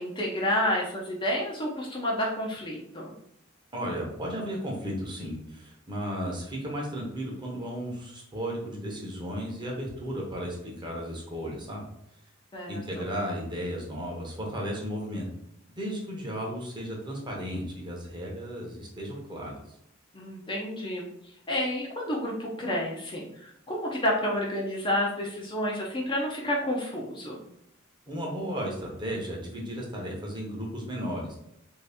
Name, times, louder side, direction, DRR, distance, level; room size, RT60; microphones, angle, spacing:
voice 1, 0.0-3.1 12.5-13.0 20.1-21.1 21.5-27.4, left 1 dB, 25° left, -2 dB, 0.5 m, -30 dB
voice 2, 3.7-11.9 12.7-15.3 15.8-19.6 28.1-31.3, equal, 20° right, -2 dB, 0.9 m, -34 dB
3.1 x 2.7 x 3.4 m, 0.75 s
head